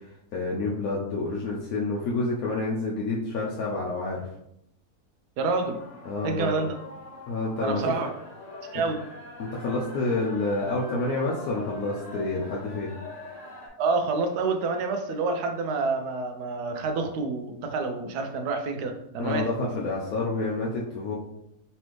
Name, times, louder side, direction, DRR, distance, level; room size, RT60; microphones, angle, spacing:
voice 1, 0.3-4.3 6.1-6.6 7.3-7.9 9.4-12.9 19.2-21.2, left 2 dB, 75° left, -4 dB, 1.2 m, -28 dB
voice 2, 5.4-5.8 6.2-6.7 7.6-8.1 8.7-9.0 13.8-19.5, right 3 dB, 85° right, 5 dB, 1.2 m, -28 dB
sound 1, 5.5-13.7, left 2 dB, 45° left, 1.5 m, -43 dB
4.3 x 3.2 x 3.1 m, 0.77 s
omnidirectional pair, 1.7 m